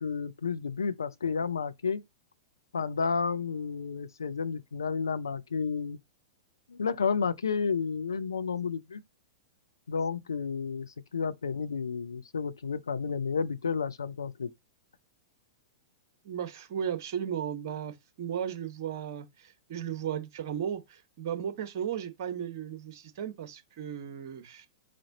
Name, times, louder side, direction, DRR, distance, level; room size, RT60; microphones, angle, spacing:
voice 1, 0.0-2.0 2.7-6.0 6.7-9.0 9.9-14.5, left 5 dB, 75° left, 0.4 m, -31 dB
voice 2, 16.2-24.7, right 9 dB, 50° right, 0.8 m, -35 dB
4.3 x 2.5 x 3.9 m
figure-of-eight pair, 100°, 2 cm